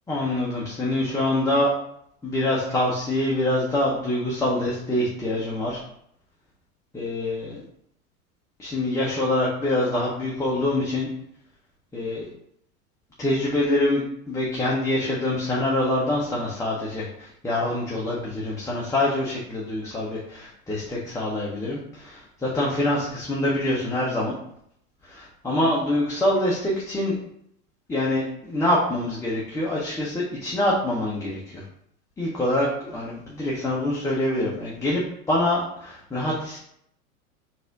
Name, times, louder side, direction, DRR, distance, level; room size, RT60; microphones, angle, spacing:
voice 1, 0.1-1.7 2.2-5.8 6.9-7.6 8.6-11.1 11.9-12.3 13.2-14.0 14.3-24.3 25.1-27.1 27.9-31.4 32.2-35.0 35.3-36.6, left 1 dB, 5° left, -5 dB, 0.7 m, -25 dB
4.0 x 2.6 x 3.8 m, 0.71 s
hypercardioid pair, 95°, 44 cm